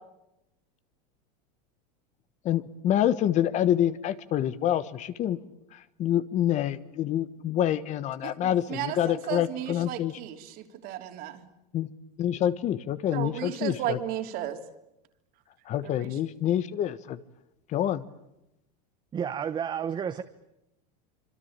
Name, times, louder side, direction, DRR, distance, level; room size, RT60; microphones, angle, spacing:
voice 1, 2.4-5.4 6.0-10.1 11.7-11.9 12.2-14.0 15.7-17.2 17.7-18.0, left 11 dB, 35° left, 14 dB, 1.3 m, -27 dB
voice 2, 8.2-11.4 13.1-14.6 15.8-16.2, right 12 dB, 50° right, 6 dB, 3.4 m, -34 dB
voice 3, 19.1-20.2, right 8 dB, 25° right, 9 dB, 1.1 m, -31 dB
26.5 x 25.5 x 8.9 m, 0.88 s
supercardioid pair, 145°, 20 cm